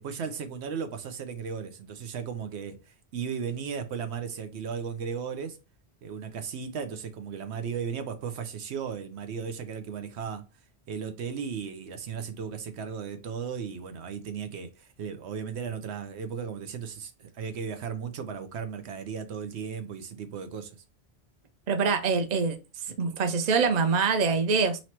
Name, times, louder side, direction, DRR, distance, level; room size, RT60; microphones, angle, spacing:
voice 1, 0.0-5.6 6.0-10.5 10.9-20.8, right 6 dB, 85° right, 1.0 m, -36 dB
voice 2, 21.7-22.6 23.0-24.8, right 5 dB, 45° right, 0.7 m, -24 dB
3.0 x 2.9 x 4.3 m
omnidirectional pair, 1.1 m